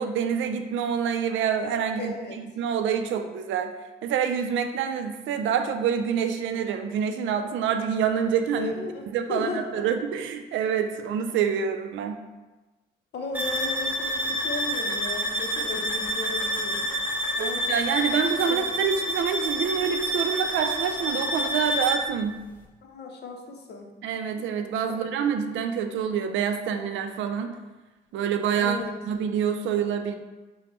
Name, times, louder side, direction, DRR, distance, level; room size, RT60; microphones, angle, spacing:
voice 1, 0.0-3.7 4.0-8.7 9.1-12.2 17.4-22.4 24.0-27.5 28.1-28.8 29.1-30.2, right 7 dB, 75° right, 7 dB, 0.4 m, -27 dB
voice 2, 2.0-2.4 8.5-9.8 13.1-16.9 17.4-17.6 18.5-18.6 22.8-23.9 28.6-28.9, left 3 dB, 60° left, 2 dB, 0.6 m, -35 dB
sound 1, 13.3-22.1, equal, 10° right, 0.6 m, -28 dB
5.0 x 2.1 x 3.0 m, 1.2 s
cardioid pair, 90°, 20 cm